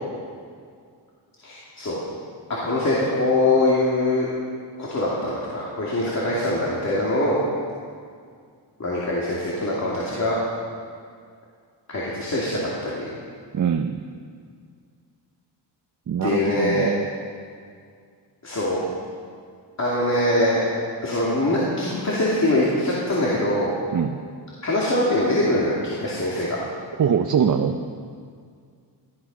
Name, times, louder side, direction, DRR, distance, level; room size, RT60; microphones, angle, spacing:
voice 1, 1.4-2.0 2.6-4.3 4.8-7.4 8.8-10.4 11.9-13.1 16.2-16.9 18.4-18.8 19.8-20.6 21.0-23.7 24.6-26.6, left 1 dB, 40° left, -7 dB, 2.6 m, -23 dB
voice 2, 13.5-14.0 16.1-17.1 23.9-24.2 27.0-27.8, right 7 dB, 45° right, 5 dB, 0.7 m, -23 dB
18.5 x 12.0 x 5.4 m, 2.1 s
wide cardioid pair, 135°, 42 cm